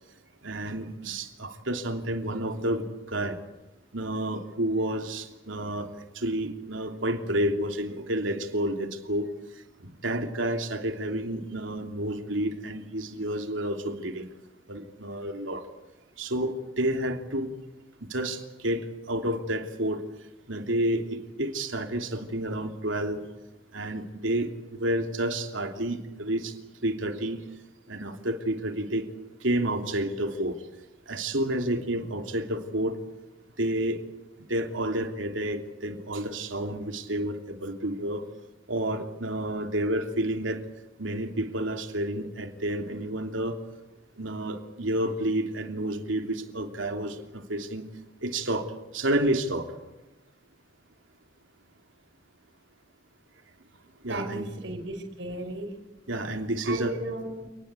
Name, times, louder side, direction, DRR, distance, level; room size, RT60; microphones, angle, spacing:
voice 1, 0.4-3.4 3.9-9.3 9.8-14.3 14.7-15.7 16.2-17.5 18.1-20.0 20.5-23.2 23.7-27.4 27.9-29.0 29.4-30.6 31.1-33.0 33.6-34.0 34.5-38.2 38.7-40.6 41.0-43.6 44.2-47.8 48.2-49.7 54.0-54.5 56.1-57.0, right 1 dB, 85° right, 5 dB, 3.1 m, -30 dB
voice 2, 54.1-55.7 56.6-57.5, right 1 dB, 70° right, 4 dB, 5.3 m, -35 dB
29.0 x 19.5 x 8.3 m, 1.0 s
head